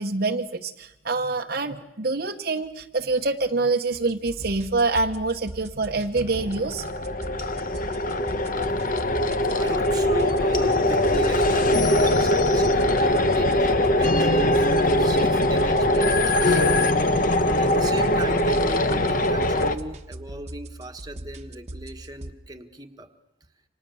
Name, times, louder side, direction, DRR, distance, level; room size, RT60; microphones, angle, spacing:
voice 1, 0.0-6.8, right 3 dB, 50° right, 4 dB, 1.0 m, -26 dB
sound 1, 3.9-22.3, right 1 dB, 35° right, 1.2 m, -40 dB
sound 2, 6.2-19.8, left 1 dB, 45° left, 1.1 m, -21 dB
sound 3, 8.5-16.9, equal, 65° left, 3.0 m, -39 dB
voice 2, 9.5-16.6 17.6-23.1, right 1 dB, 20° right, 5 dB, 1.5 m, -37 dB
29.0 x 26.0 x 7.1 m, 0.91 s
head